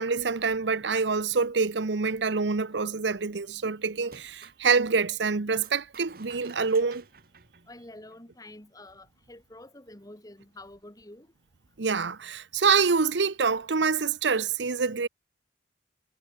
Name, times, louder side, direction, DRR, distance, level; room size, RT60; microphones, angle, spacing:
voice 1, 0.0-7.0 11.8-15.1, right 5 dB, 75° right, 0.9 m, -26 dB
sound 1, 4.0-4.6 5.6-8.3, right 4 dB, 55° right, 2.8 m, -52 dB
voice 2, 7.7-11.3, left 1 dB, 20° left, 2.6 m, -48 dB
head